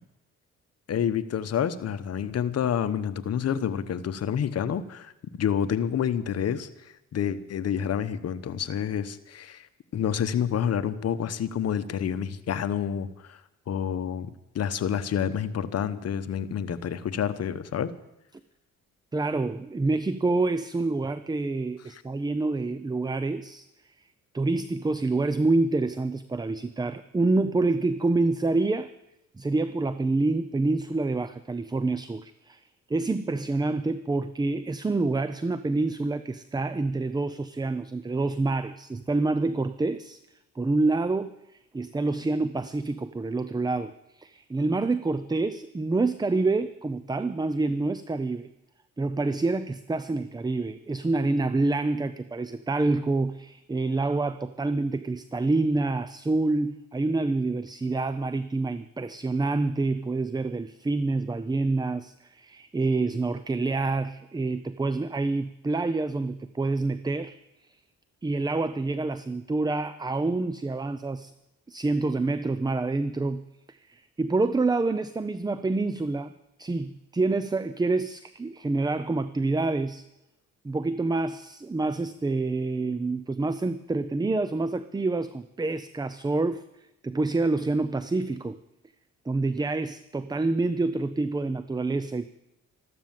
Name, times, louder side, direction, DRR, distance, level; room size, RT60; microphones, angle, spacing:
voice 1, 0.9-5.1 5.4-9.7 9.9-13.4 13.7-17.9, left 8 dB, 55° left, 12 dB, 1.1 m, -28 dB
voice 2, 19.1-23.6 24.3-28.9 29.4-32.6 32.9-40.2 40.6-41.3 41.7-48.5 49.0-67.4 68.2-71.3 71.7-76.3 76.6-80.0 80.6-86.6 87.0-88.6 89.3-92.2, right 3 dB, 15° right, 13 dB, 0.6 m, -27 dB
13.5 x 13.0 x 7.6 m, 0.89 s
cardioid pair, 90°, 30 cm